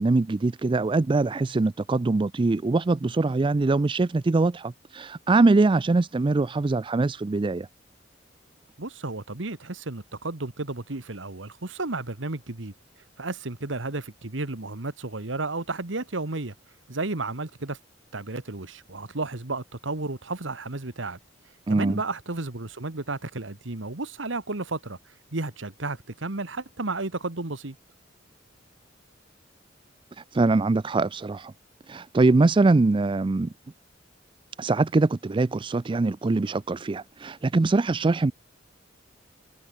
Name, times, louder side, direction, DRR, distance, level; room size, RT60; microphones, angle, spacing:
voice 1, 0.0-7.7 21.7-22.0 30.3-31.5 31.9-33.5 34.6-38.3, right 3 dB, 25° right, 0.4 m, -23 dB
voice 2, 8.8-12.7 13.2-16.5 16.9-17.8 18.1-21.2 21.7-25.0 25.3-27.8, right 2 dB, 70° right, 1.7 m, -32 dB
head